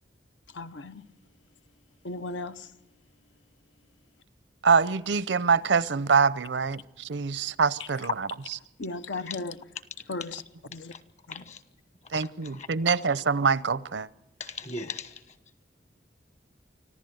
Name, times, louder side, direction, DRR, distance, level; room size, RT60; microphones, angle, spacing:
voice 1, 0.5-1.1 2.0-2.7 8.8-9.6 10.1-10.4 10.7-10.9 11.3-11.4, left 3 dB, 90° left, 0.8 m, -36 dB
voice 2, 4.6-8.3 12.1-14.1, right 5 dB, 80° right, 0.6 m, -24 dB
voice 3, 11.3-11.6 12.1-12.3 12.5-12.7 14.4-15.1, left 3 dB, 40° left, 1.3 m, -38 dB
25.0 x 15.0 x 7.8 m
head